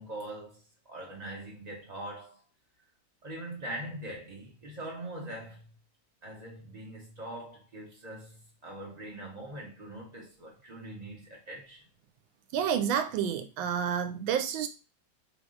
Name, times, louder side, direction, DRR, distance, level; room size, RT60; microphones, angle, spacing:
voice 1, 0.0-2.4 3.2-5.7 6.2-11.8, right 1 dB, 55° right, 0.4 m, -42 dB
voice 2, 12.5-14.7, right 8 dB, 80° right, 1.4 m, -29 dB
3.5 x 3.2 x 3.7 m
omnidirectional pair, 2.2 m